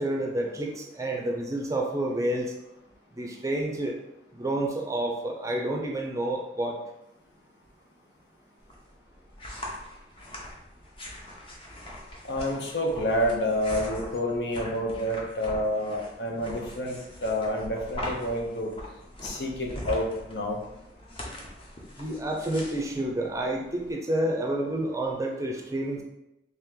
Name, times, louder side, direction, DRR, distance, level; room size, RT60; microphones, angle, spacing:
voice 1, 0.0-2.5 3.2-4.0 4.3-6.8 22.0-26.0, right 1 dB, 15° right, 1 dB, 0.5 m, -29 dB
sound 1, 8.6-23.9, left 1 dB, 30° left, 0.7 m, -41 dB
voice 2, 12.2-18.7 19.2-20.6, equal, 75° left, 1 dB, 0.7 m, -29 dB
3.3 x 3.0 x 3.7 m, 0.87 s
head